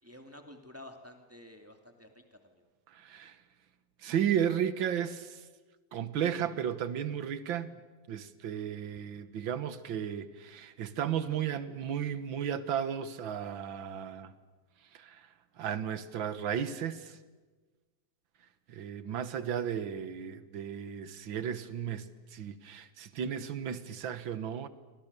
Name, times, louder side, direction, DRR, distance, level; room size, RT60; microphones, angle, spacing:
voice 1, 0.0-2.6, left 1 dB, 5° right, 2.4 m, -51 dB
voice 2, 2.9-3.4 4.0-5.4 5.9-7.7 8.1-14.3 14.9-15.3 15.6-17.2 18.7-24.7, right 9 dB, 75° right, 2.0 m, -34 dB
29.5 x 23.5 x 6.9 m
omnidirectional pair, 2.1 m